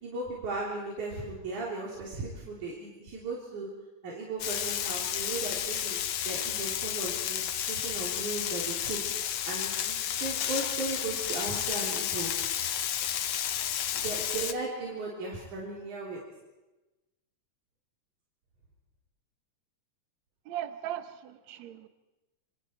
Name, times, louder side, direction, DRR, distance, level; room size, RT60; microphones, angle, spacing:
voice 1, 0.0-3.7 4.0-6.0 6.2-7.4 7.7-9.0 9.4-12.3 14.0-16.2, right 3 dB, 90° right, -4 dB, 4.9 m, -36 dB
Frying (food), 4.4-14.5, left 10 dB, 65° left, 1.9 m, -32 dB
voice 2, 20.5-21.9, right 11 dB, 70° right, 10 dB, 2.3 m, -38 dB
27.0 x 25.5 x 4.5 m, 1.1 s
omnidirectional pair, 3.4 m